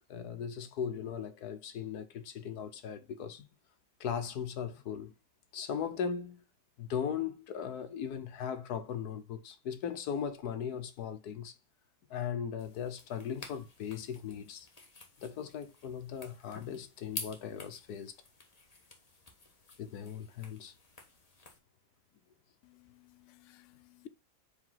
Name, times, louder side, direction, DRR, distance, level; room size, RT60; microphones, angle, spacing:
voice 1, 0.1-3.5 4.0-5.1 5.5-6.4 6.8-11.5 12.1-14.7 15.2-18.1 19.8-20.7, left 7 dB, 80° left, 1.4 m, -38 dB
sound 1, 12.6-21.6, left 3 dB, 25° left, 1.2 m, -50 dB
voice 2, 22.6-24.1, left 10 dB, 60° left, 0.8 m, -56 dB
5.0 x 4.6 x 5.6 m
omnidirectional pair, 1.7 m